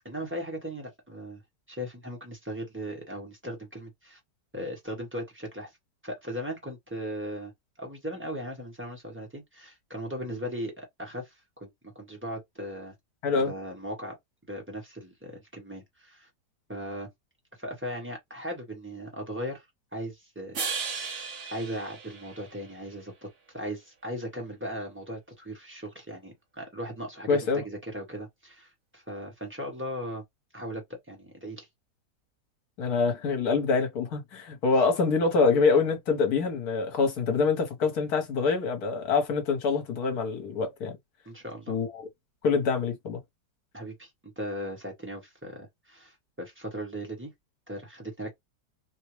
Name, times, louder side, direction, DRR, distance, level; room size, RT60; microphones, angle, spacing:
voice 1, 0.0-1.4 1.7-4.2 4.5-5.7 6.0-7.5 7.8-11.3 11.6-11.7 11.9-12.9 13.3-14.2 14.5-16.3 16.7-17.1 17.6-19.6 19.9-21.2 21.5-23.3 23.5-30.2 30.5-31.7 41.2-41.8 43.7-44.1 44.4-47.3 47.7-48.3, equal, 10° right, 1.1 m, -38 dB
sound 1, 20.5-22.9, right 5 dB, 50° right, 1.2 m, -35 dB
voice 2, 27.3-27.6 32.8-40.9 41.7-42.0 42.4-43.2, left 4 dB, 65° left, 1.5 m, -25 dB
3.6 x 2.2 x 3.1 m
omnidirectional pair, 1.8 m